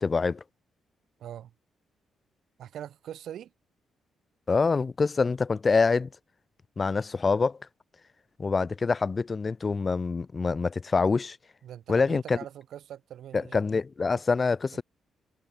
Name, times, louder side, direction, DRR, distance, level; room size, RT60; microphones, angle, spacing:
voice 1, 0.0-0.4 4.5-6.1 6.8-7.6 8.4-11.4 11.9-12.4 13.3-14.8, left 4 dB, 30° left, 0.4 m, -25 dB
voice 2, 1.2-1.5 2.6-3.5 11.6-13.6 14.7-14.8, right 10 dB, 75° right, 1.1 m, -42 dB
cardioid pair, 115°, 0 cm